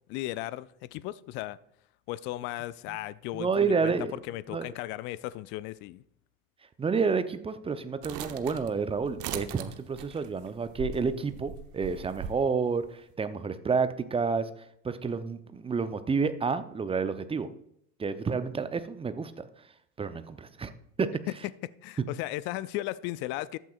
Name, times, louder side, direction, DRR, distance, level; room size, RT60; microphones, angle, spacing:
voice 1, 0.1-1.6 2.1-3.9 4.3-6.0 21.3-21.4 21.8-23.6, left 16 dB, 30° left, 0.4 m, -36 dB
voice 2, 3.3-4.1 4.5-4.7 6.8-14.5 14.8-17.5 18.0-19.3 20.0-20.7 21.0-21.1, right 5 dB, 15° right, 0.7 m, -29 dB
sound 1, 8.0-12.4, right 8 dB, 40° right, 1.2 m, -40 dB
14.5 x 12.0 x 2.5 m
figure-of-eight pair, 80°, 44 cm